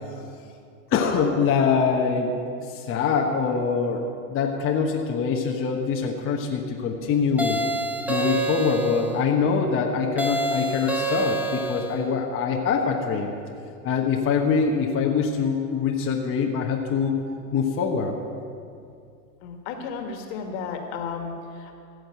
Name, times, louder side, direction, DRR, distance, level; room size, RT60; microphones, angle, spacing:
voice 1, 0.9-2.3 2.7-4.0 4.3-7.6 8.1-13.3 13.8-17.1 17.5-18.1, left 5 dB, 25° left, 1 dB, 1.1 m, -24 dB
sound 1, 7.4-9.1 10.2-12.0, right 2 dB, 5° right, 1.1 m, -27 dB
voice 2, 19.4-21.7, left 5 dB, 50° left, 4 dB, 2.0 m, -33 dB
16.0 x 6.5 x 7.7 m, 2.5 s
hypercardioid pair, 115°, 47 cm